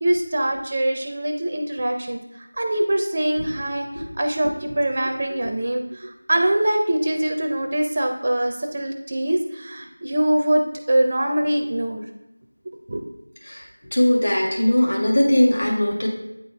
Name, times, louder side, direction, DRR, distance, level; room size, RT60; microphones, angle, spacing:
voice 1, 0.0-12.0 12.9-13.0, right 1 dB, 25° right, 4 dB, 0.5 m, -23 dB
voice 2, 13.9-16.1, left 1 dB, 50° left, -2 dB, 1.8 m, -19 dB
8.4 x 4.1 x 4.7 m, 0.96 s
figure-of-eight pair, 175°, 0 cm